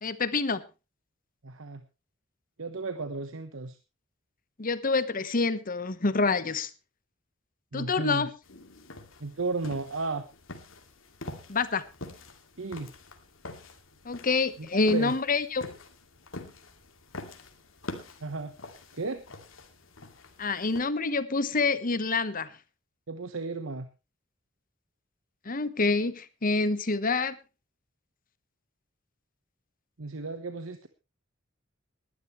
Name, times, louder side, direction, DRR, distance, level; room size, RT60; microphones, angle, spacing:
voice 1, 0.0-0.6 4.6-6.7 7.7-8.3 11.5-11.8 14.0-15.6 20.4-22.5 25.4-27.4, left 3 dB, 45° left, 1.1 m, -27 dB
voice 2, 1.4-1.8 2.6-3.8 7.7-8.3 9.2-10.2 12.6-12.9 14.6-15.1 18.2-18.5 18.9-19.2 23.1-23.9 30.0-30.9, right 3 dB, 80° right, 1.1 m, -34 dB
sound 1, 8.4-20.8, left 2 dB, 80° left, 2.4 m, -46 dB
19.5 x 12.0 x 3.1 m
head